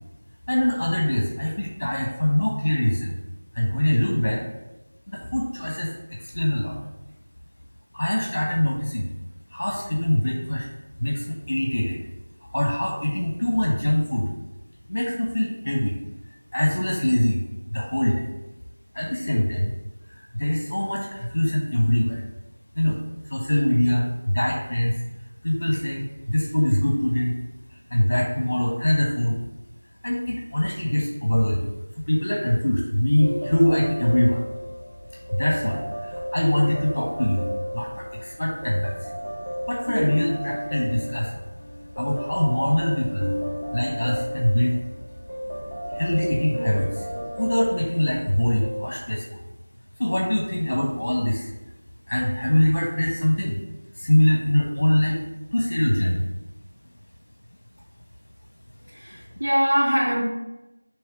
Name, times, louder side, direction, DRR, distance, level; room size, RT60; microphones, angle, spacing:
voice 1, 0.5-3.2 3.5-4.4 5.1-6.8 7.9-9.1 9.5-10.7 11.0-12.0 12.5-14.3 14.9-16.0 16.5-17.4 17.7-18.3 18.9-19.7 20.1-22.2 22.7-23.0 23.3-24.9 25.4-27.3 27.9-29.3 30.0-31.7 32.0-34.4 35.3-37.5 37.7-39.1 39.7-41.4 42.0-43.3 43.7-44.8 45.9-47.1 47.4-49.4 50.0-51.5 52.1-53.6 54.0-55.2 55.5-56.2, left 1 dB, 30° left, -2 dB, 1.1 m, -23 dB
sound 1, 33.2-48.9, equal, 5° right, 1.2 m, -33 dB
voice 2, 58.9-60.2, equal, 65° right, -5 dB, 2.1 m, -22 dB
7.0 x 3.3 x 6.1 m, 1.0 s
figure-of-eight pair, 175°, 0 cm